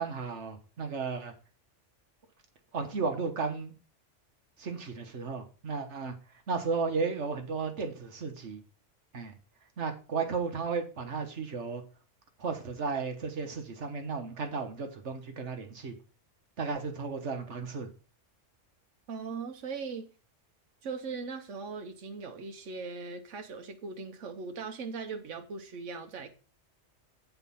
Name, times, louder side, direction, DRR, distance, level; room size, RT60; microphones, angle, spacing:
voice 1, 0.0-1.3 2.7-3.7 4.6-6.1 6.5-8.6 9.1-9.3 9.8-11.8 12.4-16.0 16.6-17.9, right 5 dB, 70° right, 1.5 m, -34 dB
voice 2, 19.1-20.1 20.8-26.3, right 4 dB, 90° right, 1.2 m, -39 dB
8.1 x 4.6 x 5.6 m
omnidirectional pair, 1.2 m